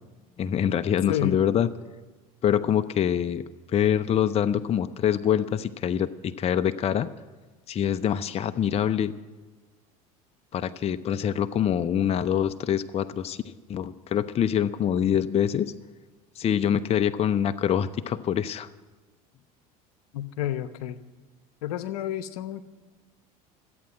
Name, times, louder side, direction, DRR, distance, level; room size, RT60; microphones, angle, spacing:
voice 1, 0.4-1.7 2.4-3.4 3.7-7.1 7.7-9.1 10.5-13.4 13.7-15.7 16.4-18.7, left 9 dB, 35° left, 12 dB, 0.6 m, -25 dB
voice 2, 1.1-1.4 20.1-21.0 21.6-22.6, left 12 dB, 80° left, 13 dB, 0.8 m, -30 dB
13.5 x 8.7 x 9.7 m, 1.3 s
hypercardioid pair, 90°, 19 cm